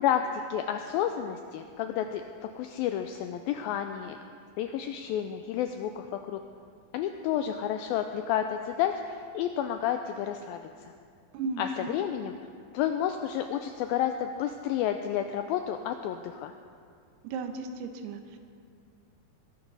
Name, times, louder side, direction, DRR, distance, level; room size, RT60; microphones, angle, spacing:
voice 1, 0.0-2.2 2.6-4.2 4.6-6.4 6.9-10.9 11.6-12.3 12.7-16.5, left 10 dB, 85° left, 7 dB, 2.1 m, -30 dB
voice 2, 11.3-12.1 17.2-18.4, right 3 dB, 80° right, 6 dB, 2.9 m, -35 dB
21.0 x 11.5 x 4.0 m, 2.2 s
omnidirectional pair, 4.7 m